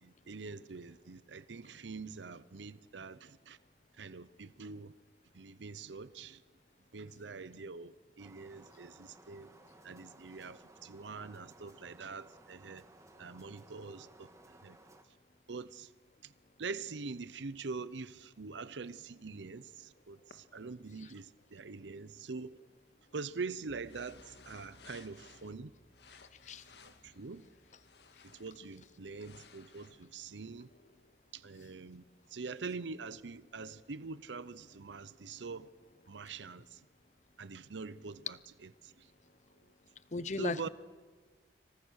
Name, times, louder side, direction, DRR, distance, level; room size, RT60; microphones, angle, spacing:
voice 1, 0.0-3.6 4.0-4.9 5.3-6.4 6.9-9.5 9.8-12.8 13.2-14.8 15.5-15.9 16.2-16.3 16.6-22.6 23.1-25.7 26.8-27.5 28.2-30.7 31.3-32.0 32.3-35.7 36.1-36.8 37.4-39.1 40.4-40.7, right 4 dB, 85° right, 0.7 m, -44 dB
sound 1, 8.2-15.0, right 1 dB, 15° right, 1.6 m, -59 dB
sound 2, 20.3-20.4 23.8-25.6 25.9-28.6 29.0-31.2, left 5 dB, 70° left, 1.8 m, -59 dB
sound 3, 23.7-32.6, right 1 dB, 55° right, 3.3 m, -67 dB
voice 2, 40.1-40.7, left 3 dB, 40° left, 0.8 m, -36 dB
27.0 x 25.0 x 6.4 m
head